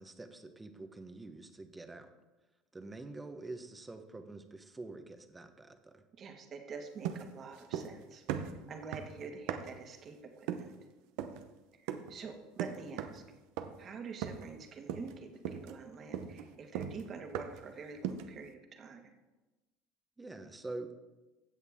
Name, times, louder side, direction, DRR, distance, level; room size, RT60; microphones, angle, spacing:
voice 1, 0.0-2.1 2.7-6.0 20.2-20.9, right 2 dB, 15° right, 8 dB, 1.0 m, -46 dB
voice 2, 6.2-10.7 11.8-13.2 13.8-19.0, right 5 dB, 40° right, 4 dB, 1.7 m, -47 dB
sound 1, 7.0-8.0 8.3-9.9 10.5-10.8 11.2-11.5 11.9-12.2 12.6-13.3 13.6-13.9 14.2-14.6 14.9-15.2 15.4-17.7 18.0-18.4, right 8 dB, 75° right, 0.8 m, -39 dB
16.0 x 6.5 x 3.6 m, 1.1 s
supercardioid pair, 115°, 0 cm